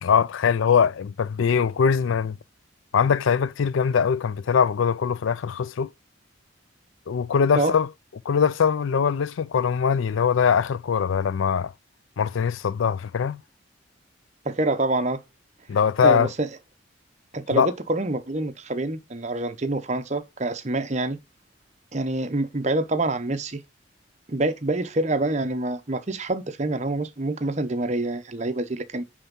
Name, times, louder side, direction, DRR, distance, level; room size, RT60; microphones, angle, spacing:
voice 1, 0.0-2.4 2.9-5.9 7.1-7.9 8.3-11.7 12.2-13.4 15.7-16.3 17.5-17.7, left 6 dB, 75° left, 0.4 m, -22 dB
voice 2, 14.4-15.2 16.0-16.5 17.3-21.2 21.9-23.6 24.3-29.0, right 2 dB, 35° right, 0.8 m, -26 dB
9.9 x 3.5 x 5.3 m
head